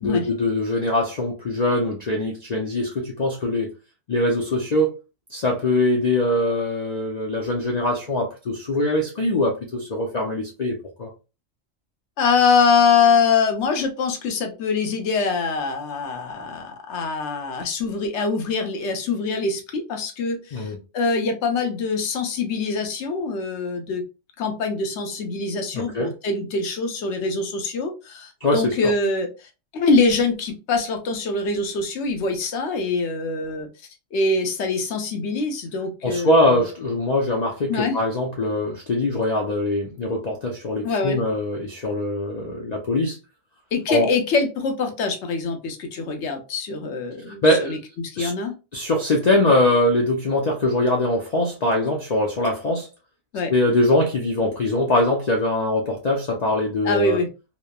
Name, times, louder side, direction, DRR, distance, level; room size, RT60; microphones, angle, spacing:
voice 1, 0.0-3.7 4.1-5.0 5.3-11.1 20.5-20.8 25.7-26.1 28.4-28.9 36.0-43.2 43.9-44.1 47.3-47.7 48.2-48.3 48.7-52.9 53.5-57.2, left 1 dB, 90° left, 0.3 m, -22 dB
voice 2, 12.2-24.0 24.4-33.7 34.1-36.6 37.7-38.0 40.8-41.2 43.7-48.5 53.3-53.5 56.8-57.3, left 4 dB, 65° left, 0.8 m, -24 dB
3.0 x 2.1 x 2.2 m
omnidirectional pair, 1.4 m